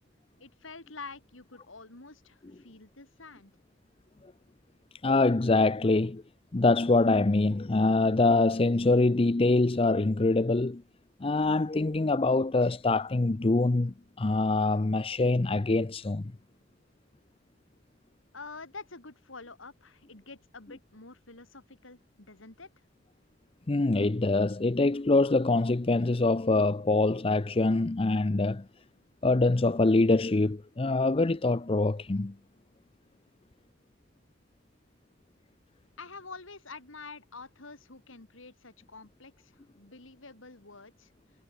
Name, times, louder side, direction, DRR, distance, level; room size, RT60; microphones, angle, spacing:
voice 1, 0.4-3.5 18.3-22.7 36.0-41.1, left 4 dB, 80° left, 3.6 m, -47 dB
voice 2, 5.0-6.2 6.5-10.8 11.2-16.3 23.7-28.6 29.2-32.3, left 2 dB, 30° left, 0.6 m, -24 dB
head